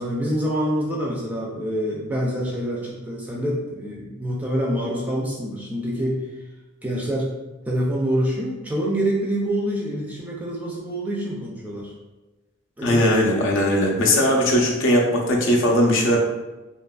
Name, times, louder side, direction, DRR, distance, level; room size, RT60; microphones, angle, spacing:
voice 1, 0.0-6.2 6.8-7.4 7.7-11.9 12.8-13.0, equal, 5° right, -4 dB, 0.3 m, -26 dB
voice 2, 12.8-16.2, left 1 dB, 65° left, -1 dB, 0.5 m, -19 dB
2.8 x 2.4 x 2.3 m, 1.1 s
head